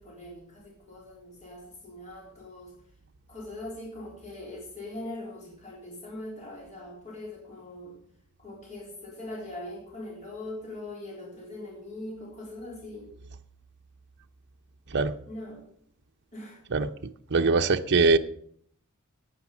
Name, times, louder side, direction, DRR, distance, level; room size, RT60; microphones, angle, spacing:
voice 1, 0.0-2.7 3.3-8.0 8.4-13.1 15.3-15.6 16.3-16.6, left 1 dB, 35° left, -3 dB, 3.7 m, -41 dB
voice 2, 17.3-18.2, right 4 dB, 50° right, 6 dB, 0.7 m, -22 dB
10.0 x 9.4 x 7.1 m, 0.64 s
head